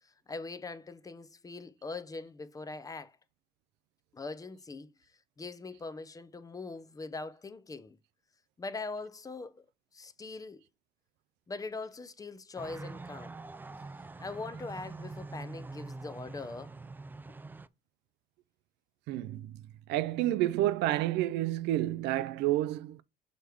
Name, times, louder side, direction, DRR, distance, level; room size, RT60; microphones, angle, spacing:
voice 1, 0.0-3.2 4.1-4.9 5.4-8.0 8.6-9.7 9.9-10.6 11.5-13.4 14.2-16.7, left 3 dB, 20° left, 0.6 m, -42 dB
sound 1, 12.6-17.7, right 3 dB, 10° right, 0.3 m, -44 dB
voice 2, 19.1-19.6 19.9-23.0, right 14 dB, 85° right, 0.4 m, -29 dB
6.5 x 3.3 x 4.6 m
cardioid pair, 110°, 17 cm